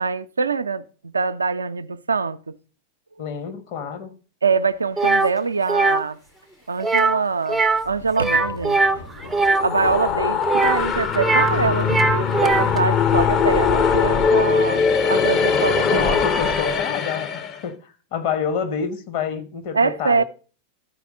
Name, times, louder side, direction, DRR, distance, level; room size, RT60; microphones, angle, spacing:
voice 1, 0.0-2.5 4.4-6.2 6.7-8.8 9.6-16.2 19.7-20.2, right 4 dB, 75° right, 0.4 m, -24 dB
voice 2, 3.2-4.1 15.9-20.2, left 7 dB, 50° left, 1.1 m, -28 dB
sound 1, 4.5-13.6, left 3 dB, 65° left, 4.0 m, -41 dB
sound 2, 5.0-5.3 5.7-6.0 6.8-7.2 7.5-7.9 8.1-9.7 10.4-11.6 11.8-12.8, right 3 dB, 10° right, 0.4 m, -20 dB
sound 3, 9.3-17.6, left 6 dB, 30° left, 0.6 m, -21 dB
13.0 x 4.7 x 3.9 m
figure-of-eight pair, 90°, 0 cm